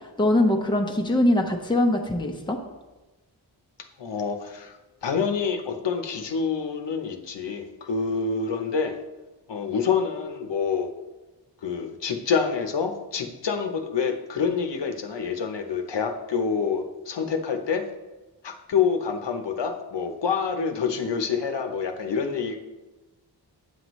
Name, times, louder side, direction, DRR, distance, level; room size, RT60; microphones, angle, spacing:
voice 1, 0.2-2.6, left 1 dB, 10° left, 2 dB, 0.8 m, -22 dB
voice 2, 4.0-9.0 9.5-10.9 11.6-17.9 18.4-22.6, left 6 dB, 75° left, 5 dB, 0.9 m, -27 dB
8.5 x 7.8 x 3.1 m, 1.1 s
wide cardioid pair, 105°, 43 cm